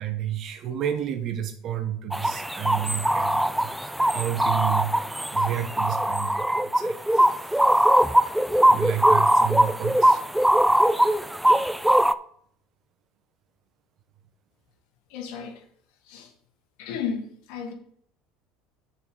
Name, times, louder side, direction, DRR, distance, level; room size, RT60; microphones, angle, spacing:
voice 1, 0.0-7.3 7.8-7.9 8.7-10.3, right 10 dB, 50° right, 1.3 m, -31 dB
sound 1, 2.1-12.1, right 1 dB, 5° right, 0.4 m, -21 dB
voice 2, 15.1-15.6 16.0-16.3 16.8-17.7, left 6 dB, 70° left, 1.6 m, -33 dB
7.1 x 4.5 x 6.8 m
hypercardioid pair, 80°, 0 cm